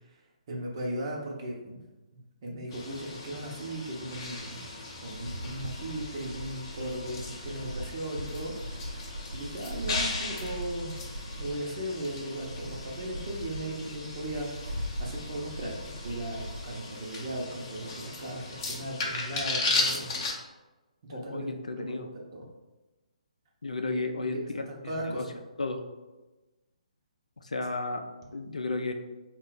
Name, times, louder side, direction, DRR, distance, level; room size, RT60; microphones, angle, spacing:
voice 1, 0.5-1.8 2.1-4.7 5.0-11.0 11.4-20.1 21.0-22.0 22.3-22.4 23.8-25.4, right 1 dB, 40° right, -1 dB, 0.9 m, -37 dB
sound 1, 2.7-20.3, left 3 dB, 30° left, 0.7 m, -37 dB
sound 2, 5.1-16.7, equal, 80° right, 0.4 m, -40 dB
voice 2, 21.1-22.1 23.6-25.2 25.6-25.8 27.4-28.0 28.3-28.9, left 3 dB, 65° left, 5 dB, 0.4 m, -33 dB
4.1 x 2.4 x 3.8 m, 1.1 s
figure-of-eight pair, 135°, 4 cm